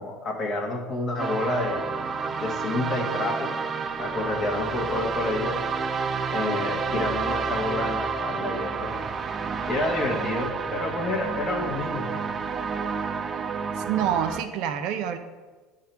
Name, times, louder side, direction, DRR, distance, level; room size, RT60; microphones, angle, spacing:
voice 1, 0.0-1.8 2.4-3.5 4.0-5.6 6.3-8.9 9.7-12.1, left 2 dB, 40° left, -1 dB, 1.4 m, -29 dB
sound 1, 1.2-14.4, right 5 dB, 30° right, 0.4 m, -30 dB
voice 2, 13.8-15.2, right 9 dB, 70° right, 8 dB, 0.7 m, -27 dB
10.0 x 3.8 x 4.4 m, 1.3 s
supercardioid pair, 110°, 0 cm